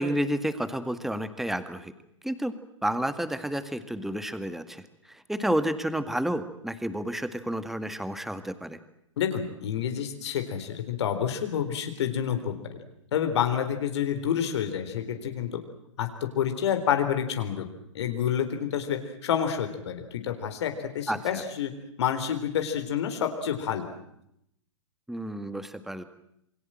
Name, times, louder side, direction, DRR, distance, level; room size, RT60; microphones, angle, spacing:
voice 1, 0.0-1.9 2.2-2.6 2.8-8.8 21.1-21.4 25.1-26.0, right 1 dB, ahead, 11 dB, 1.9 m, -30 dB
voice 2, 9.2-12.5 13.1-15.6 16.0-17.7 17.9-21.7 22.0-23.9, left 9 dB, 60° left, 6 dB, 3.9 m, -28 dB
28.0 x 22.0 x 7.7 m, 0.76 s
hypercardioid pair, 120°, 16 cm